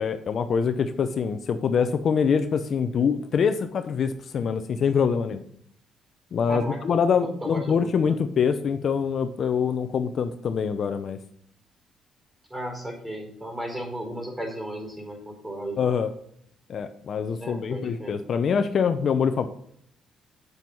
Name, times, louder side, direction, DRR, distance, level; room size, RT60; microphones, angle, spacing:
voice 1, 0.0-5.4 6.3-11.2 15.8-16.1 16.7-19.5, left 6 dB, 60° left, 9 dB, 0.8 m, -24 dB
voice 2, 6.5-6.8 7.2-8.2 12.5-15.9 17.4-18.2, right 1 dB, 15° right, 1 dB, 4.7 m, -35 dB
8.0 x 7.4 x 5.4 m, 0.65 s
supercardioid pair, 70°, 0 cm